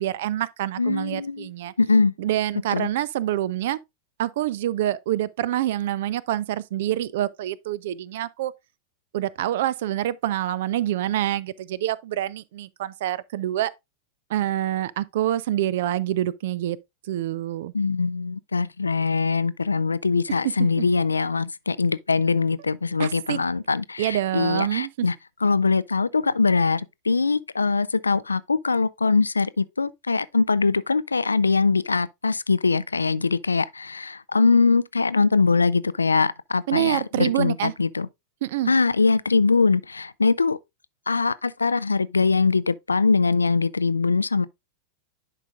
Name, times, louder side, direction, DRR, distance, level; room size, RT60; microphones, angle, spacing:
voice 1, 0.0-1.7 2.2-3.8 4.2-8.5 9.1-13.7 14.3-16.8 17.1-17.7 20.6-20.9 23.0-23.4 24.0-25.1 36.7-37.7 38.4-38.7, right 13 dB, 55° right, 0.4 m, -26 dB
voice 2, 0.8-1.5 1.8-2.1 2.7-2.9 17.7-25.1 25.4-38.1 38.7-40.6 41.1-44.5, left 4 dB, 75° left, 0.3 m, -22 dB
10.5 x 4.9 x 2.4 m
figure-of-eight pair, 90°, 0 cm